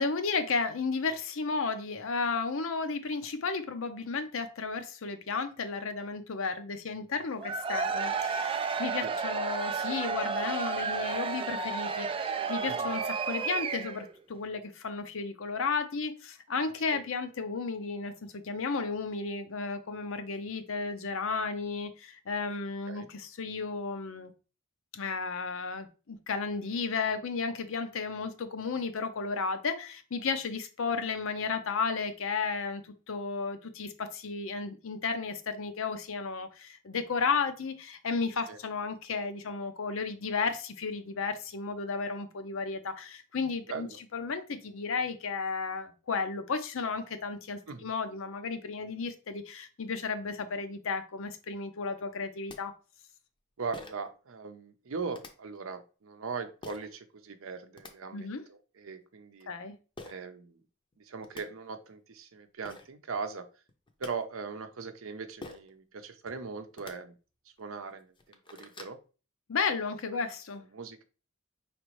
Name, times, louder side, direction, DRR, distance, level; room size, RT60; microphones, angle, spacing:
voice 1, 0.0-24.3 24.9-43.9 44.1-52.7 58.1-58.4 59.5-59.8 69.5-70.6, left 4 dB, 70° left, 9 dB, 0.6 m, -33 dB
Cheering / Crowd, 7.4-14.1, right 5 dB, 25° right, 0.3 m, -32 dB
voice 2, 43.7-44.0 47.7-47.9 53.6-59.5 60.0-60.6 61.0-63.5 64.0-67.1 67.6-69.0 70.1-70.3 70.7-71.0, right 5 dB, 70° right, 8 dB, 0.6 m, -40 dB
sound 1, 52.5-52.6 53.7-54.1 55.1-55.3 56.6-56.9 57.5-57.9 60.0-60.1 60.9-61.0 61.2-61.4 62.3-62.4 62.6-62.9 63.7-64.1 65.4-65.7 66.7-66.9 67.6-67.7 68.1-69.0, left 3 dB, 25° left, 0.6 m, -46 dB
5.1 x 3.3 x 3.1 m, 0.35 s
head